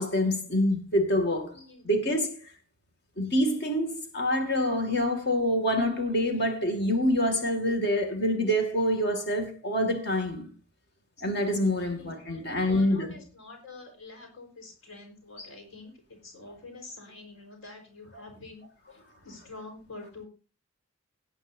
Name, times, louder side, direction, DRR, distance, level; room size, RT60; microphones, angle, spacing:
voice 1, 0.0-1.5 1.8-2.3 3.2-10.5 11.2-13.2 15.4-15.5, left 1 dB, 50° left, 2.3 m, -26 dB
voice 2, 1.5-1.9 11.9-18.6 19.2-20.3, left 3 dB, 70° left, 4.5 m, -47 dB
18.5 x 9.0 x 2.7 m
head